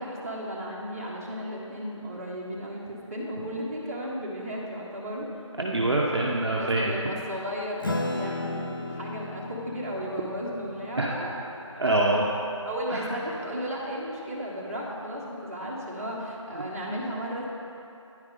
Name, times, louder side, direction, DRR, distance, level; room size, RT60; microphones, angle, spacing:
voice 1, 0.0-5.5 6.6-12.0 12.6-17.5, equal, 30° right, -6 dB, 1.1 m, -34 dB
voice 2, 5.6-6.8 11.0-11.1 11.8-12.3 12.9-13.0, right 2 dB, 55° right, -3 dB, 0.7 m, -24 dB
Acoustic guitar / Strum, 7.8-12.7, left 2 dB, 40° left, 0.5 m, -35 dB
9.7 x 4.7 x 3.7 m, 2.8 s
figure-of-eight pair, 170°, 16 cm